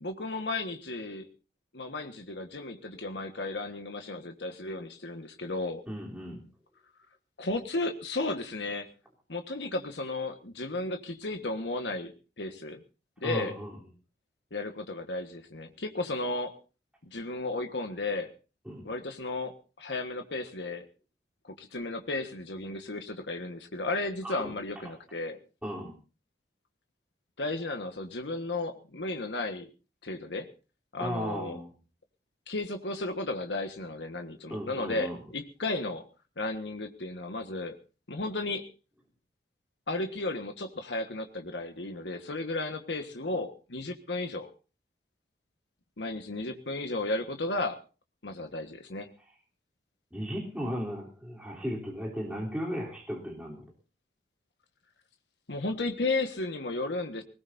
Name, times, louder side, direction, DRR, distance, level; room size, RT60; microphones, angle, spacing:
voice 1, 0.0-1.3 1.7-5.8 7.4-8.9 9.3-12.8 13.2-13.6 14.5-16.5 17.0-18.3 18.8-20.8 21.4-25.4 27.4-29.7 30.0-30.5 30.9-31.6 32.5-36.0 36.4-37.7 38.1-38.7 39.9-44.5 46.0-47.8 48.2-49.1 55.5-57.2, left 2 dB, 85° left, 5 dB, 1.5 m, -34 dB
voice 2, 5.9-6.4 13.2-13.8 18.6-18.9 24.2-24.5 24.8-24.9 25.6-25.9 31.0-31.7 34.5-35.2 50.1-53.7, equal, 5° right, -3 dB, 3.4 m, -36 dB
20.5 x 19.5 x 2.7 m, 0.35 s
head